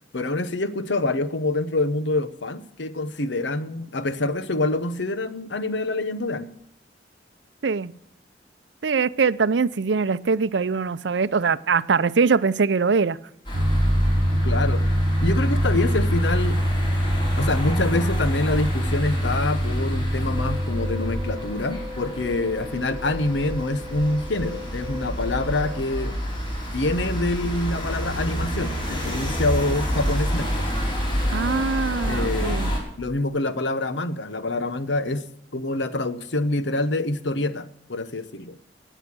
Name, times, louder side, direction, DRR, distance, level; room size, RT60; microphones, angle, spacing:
voice 1, 0.1-6.5 14.4-14.8 15.2-16.6 17.4-26.1 26.7-30.7 32.1-32.6 33.0-35.2 35.5-38.6, left 2 dB, 80° left, 13 dB, 1.0 m, -26 dB
voice 2, 7.6-7.9 8.8-13.2 31.3-32.7, right 5 dB, 75° right, 17 dB, 0.5 m, -22 dB
sound 1, 13.4-32.8, equal, 25° left, 4.7 m, -29 dB
sound 2, 13.5-21.4, equal, 45° right, 1.0 m, -24 dB
sound 3, 20.2-25.8, left 3 dB, 5° right, 1.5 m, -39 dB
17.0 x 9.1 x 6.2 m, 0.75 s
head